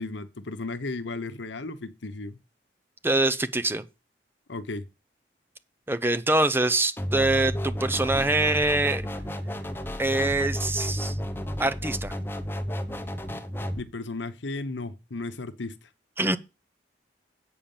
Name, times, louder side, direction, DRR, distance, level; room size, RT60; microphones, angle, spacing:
voice 1, 0.0-2.4 4.5-4.9 13.7-15.8, left 3 dB, 80° left, 0.9 m, -34 dB
voice 2, 3.0-3.8 5.9-9.1 10.0-11.2 11.6-12.2 16.2-16.4, right 2 dB, 10° right, 0.5 m, -24 dB
sound 1, 7.0-13.8, equal, 10° left, 0.9 m, -32 dB
8.6 x 5.3 x 7.1 m
head